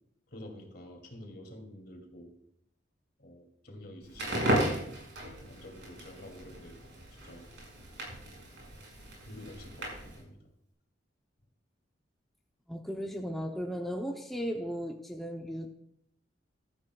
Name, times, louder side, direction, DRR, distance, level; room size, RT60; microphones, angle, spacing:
voice 1, 0.3-2.3 3.2-4.6 5.3-6.8 7.1-7.5 9.2-10.4, left 1 dB, 55° left, 3 dB, 2.6 m, -49 dB
Crackle, 4.1-10.2, right 1 dB, 65° right, 5.6 m, -35 dB
voice 2, 12.7-15.7, equal, ahead, 1 dB, 0.7 m, -36 dB
15.5 x 13.0 x 2.3 m, 0.73 s
head